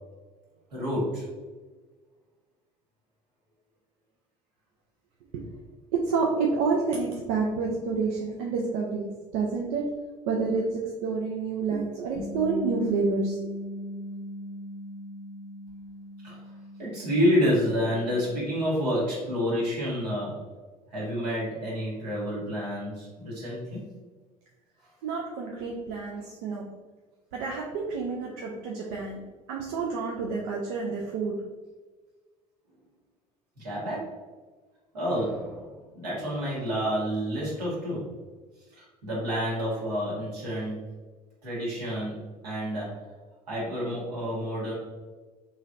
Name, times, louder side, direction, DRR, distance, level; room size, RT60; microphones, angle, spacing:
voice 1, 0.7-1.3 16.2-16.4 16.8-20.4 20.9-23.8 33.6-34.2 34.9-38.1 38.7-40.8 41.4-43.0 43.5-44.7, equal, 80° right, -6 dB, 1.5 m, -29 dB
voice 2, 5.9-9.9 10.3-13.5 25.0-26.7 27.3-29.2 29.5-31.4, right 4 dB, 65° right, -1 dB, 0.5 m, -29 dB
Bass guitar, 12.2-18.4, left 1 dB, 35° left, 0.7 m, -39 dB
3.9 x 3.0 x 2.5 m, 1.4 s
figure-of-eight pair, 60°, 20 cm